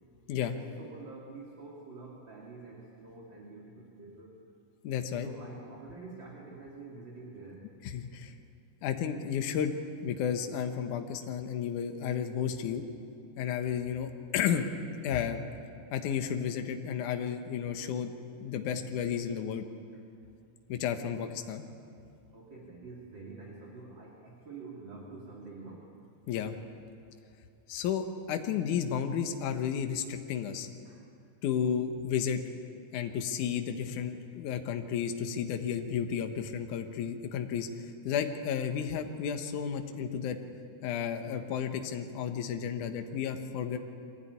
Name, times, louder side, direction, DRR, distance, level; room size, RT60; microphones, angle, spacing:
voice 1, 0.4-4.4 5.2-7.7 22.3-25.9 30.8-31.0, right 3 dB, 35° right, -3 dB, 3.0 m, -47 dB
voice 2, 4.8-5.3 7.8-8.3 8.8-9.7 10.0-12.8 13.4-14.7 15.0-15.4 15.9-19.6 20.7-21.7 26.3-26.5 27.7-30.7 31.4-32.4 32.9-40.4 40.8-43.8, left 8 dB, 70° left, 6 dB, 2.5 m, -32 dB
23.5 x 16.0 x 9.5 m, 2.5 s
omnidirectional pair, 3.8 m